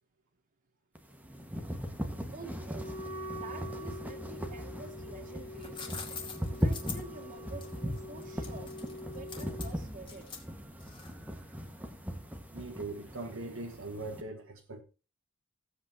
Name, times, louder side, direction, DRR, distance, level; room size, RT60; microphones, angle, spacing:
sound 1, 0.9-14.2, equal, 5° right, 1.5 m, -39 dB
voice 1, 2.3-2.9 3.2-6.2 6.6-8.7 9.1-10.3, right 3 dB, 40° right, 2.2 m, -49 dB
Wind instrument woodwind instrument, 2.7-9.8, left 1 dB, 45° left, 2.1 m, -45 dB
sound 2, 5.3-11.3, left 5 dB, 20° left, 2.2 m, -45 dB
voice 2, 12.5-14.8, right 2 dB, 65° right, 1.4 m, -40 dB
16.5 x 8.2 x 2.8 m
head